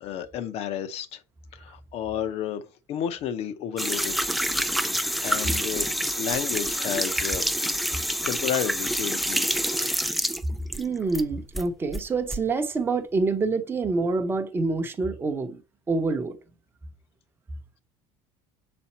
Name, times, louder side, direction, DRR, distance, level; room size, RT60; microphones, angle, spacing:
voice 1, 0.0-1.2 1.5-4.2 4.8-7.4 8.2-9.5, left 9 dB, 45° left, 0.8 m, -32 dB
sound 1, 3.8-11.2 11.5-12.4, equal, ahead, 0.3 m, -27 dB
voice 2, 10.8-15.6 15.9-16.4, right 3 dB, 15° right, 0.8 m, -26 dB
6.8 x 4.3 x 4.3 m
cardioid pair, 155°, 14 cm